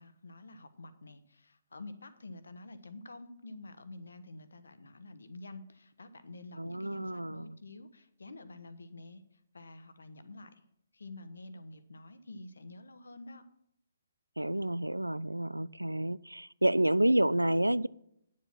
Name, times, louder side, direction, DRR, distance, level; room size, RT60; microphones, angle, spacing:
voice 1, 0.0-9.2 9.5-10.6 10.9-13.4, left 2 dB, 70° left, 11 dB, 1.0 m, -49 dB
voice 2, 6.6-7.5 14.4-17.9, right 1 dB, 90° right, 21 dB, 0.3 m, -29 dB
9.1 x 7.6 x 5.8 m, 0.76 s
figure-of-eight pair, 135°, 0 cm